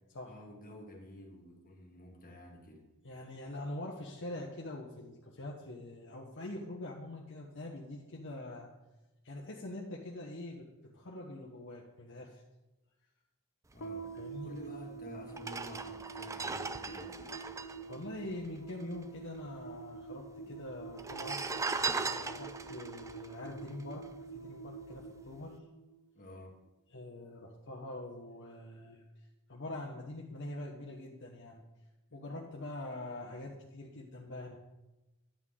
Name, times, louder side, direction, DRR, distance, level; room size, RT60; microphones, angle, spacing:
voice 1, 0.2-2.9 13.7-14.1 14.4-17.4 26.1-26.6, left 1 dB, 40° left, 0 dB, 1.9 m, -50 dB
voice 2, 3.0-8.7 9.2-12.4 14.1-14.7 17.9-21.4 22.0-24.0 24.3-25.6 26.9-29.0 29.5-31.6 32.1-34.6, left 1 dB, 60° left, -1 dB, 1.1 m, -44 dB
sound 1, 13.8-26.3, right 5 dB, 85° left, 0.8 m, -47 dB
sound 2, 14.6-14.7 15.3-19.0 19.2-19.3 19.5-20.2 20.9-24.4 24.8-25.0, right 4 dB, 15° right, 0.3 m, -38 dB
11.5 x 8.1 x 3.7 m, 1.0 s
head